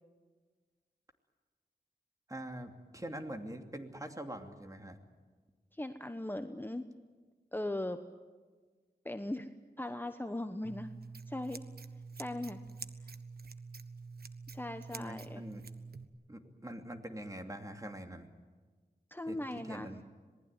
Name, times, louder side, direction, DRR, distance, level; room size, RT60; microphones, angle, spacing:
voice 1, 2.3-5.0 14.9-15.6 16.3-18.3 19.3-20.0, right 1 dB, 20° right, 5 dB, 2.8 m, -44 dB
voice 2, 5.7-6.9 7.5-8.0 9.0-9.5 9.8-10.9 11.3-11.6 12.2-12.6 14.5-15.4 19.1-20.0, left 1 dB, 10° left, 8 dB, 1.1 m, -39 dB
Scissors, 10.6-16.0, right 4 dB, 70° right, 1.4 m, -47 dB
27.0 x 19.5 x 9.1 m, 1.4 s
wide cardioid pair, 55°, 17 cm